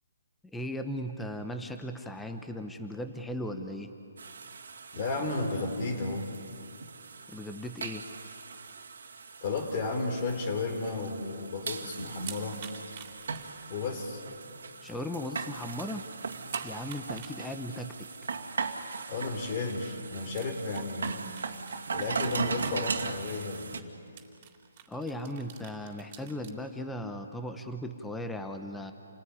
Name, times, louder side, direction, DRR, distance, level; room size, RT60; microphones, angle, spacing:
voice 1, 0.5-3.9 7.3-8.0 14.8-16.0 16.6-18.1 24.9-28.9, left 1 dB, 5° left, 6 dB, 1.2 m, -37 dB
sound 1, 4.2-23.8, right 5 dB, 75° right, 2.4 m, -39 dB
voice 2, 4.9-6.3 9.4-12.6 13.7-14.2 19.1-21.2 21.9-23.9, left 3 dB, 40° left, 4 dB, 4.0 m, -33 dB
sound 2, 12.1-14.0 14.3-14.4 14.9-15.0 15.2-15.3 16.4-17.7 18.1-18.2 19.6-19.7 20.2-23.4 23.7-23.8 24.1-26.5, right 10 dB, 35° right, 3.3 m, -49 dB
28.5 x 20.0 x 10.0 m, 2.4 s
hypercardioid pair, 155°, 0 cm